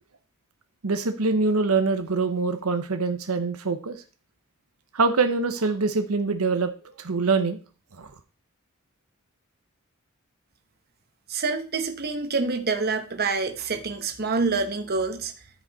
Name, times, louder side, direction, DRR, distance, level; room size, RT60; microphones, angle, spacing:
voice 1, 0.8-4.0 4.9-7.6 8.0-8.1, right 4 dB, 85° right, 8 dB, 0.9 m, -24 dB
voice 2, 11.3-15.3, right 4 dB, 45° right, 7 dB, 1.1 m, -27 dB
13.5 x 5.2 x 4.1 m, 0.35 s
head